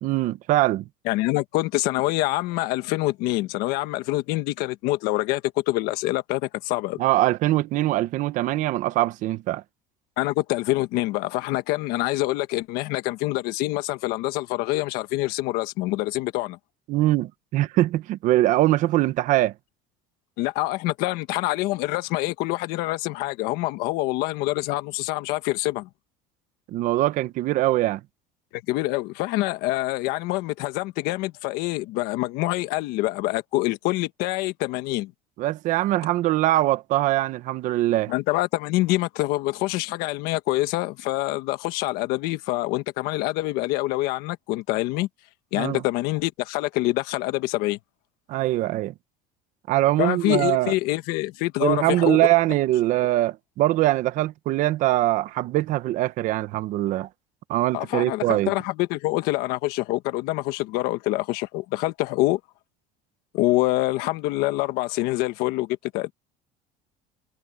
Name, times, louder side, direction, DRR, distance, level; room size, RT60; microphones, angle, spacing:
voice 1, 0.0-0.9 7.0-9.6 16.9-19.5 26.7-28.0 35.4-38.1 45.5-45.8 48.3-48.9 49.7-50.7 51.6-57.1 57.5-58.5, right 16 dB, 50° right, 1.0 m, -22 dB
voice 2, 1.0-7.0 10.2-16.6 20.4-25.9 28.5-35.1 38.1-45.1 45.5-47.8 50.0-52.2 57.7-62.4 63.3-66.1, left 18 dB, 65° left, 1.4 m, -26 dB
cardioid pair, 160°, 17 cm